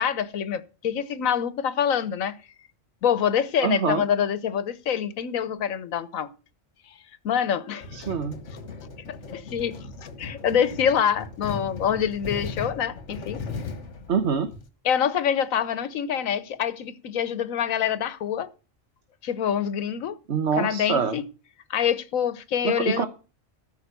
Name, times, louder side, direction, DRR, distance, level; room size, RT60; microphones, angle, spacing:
voice 1, 0.0-2.3 3.0-6.3 7.2-8.1 9.1-13.4 14.8-18.5 19.2-20.2 20.6-21.2 21.7-23.1, left 8 dB, 90° left, 1.3 m, -26 dB
voice 2, 3.6-4.0 7.9-8.4 14.1-14.5 20.3-21.2 22.6-23.1, right 6 dB, 60° right, 1.3 m, -25 dB
sound 1, 7.8-14.7, left 4 dB, 65° left, 1.7 m, -37 dB
13.5 x 5.6 x 6.8 m
omnidirectional pair, 1.4 m